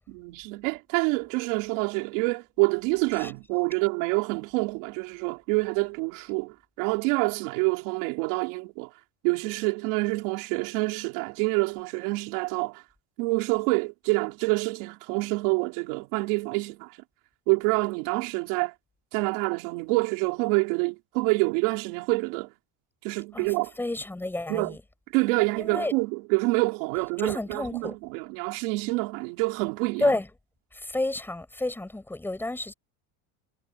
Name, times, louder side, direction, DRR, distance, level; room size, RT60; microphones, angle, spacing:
voice 1, 0.1-8.9 9.2-12.8 13.2-16.9 17.5-18.7 19.1-22.5 23.0-23.7 24.5-24.8 25.1-30.1, right 26 dB, 75° right, 4.4 m, -27 dB
voice 2, 23.3-24.8 25.6-25.9 27.2-27.9 30.0-30.3 30.7-32.7, left 2 dB, 5° left, 8.0 m, -30 dB
cardioid pair, 175°, 39 cm